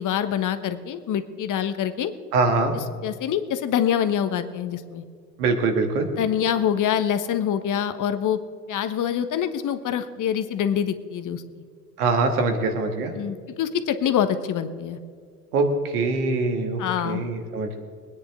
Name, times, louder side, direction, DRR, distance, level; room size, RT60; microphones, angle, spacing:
voice 1, 0.0-2.1 3.0-5.0 6.2-8.4 8.7-11.6 13.1-15.0 16.8-17.2, left 9 dB, 40° left, 10 dB, 1.3 m, -25 dB
voice 2, 2.3-2.7 5.4-6.1 12.0-13.1 15.5-17.8, right 3 dB, 75° right, 5 dB, 2.2 m, -23 dB
24.0 x 9.8 x 3.7 m, 2.1 s
hypercardioid pair, 70°, 45 cm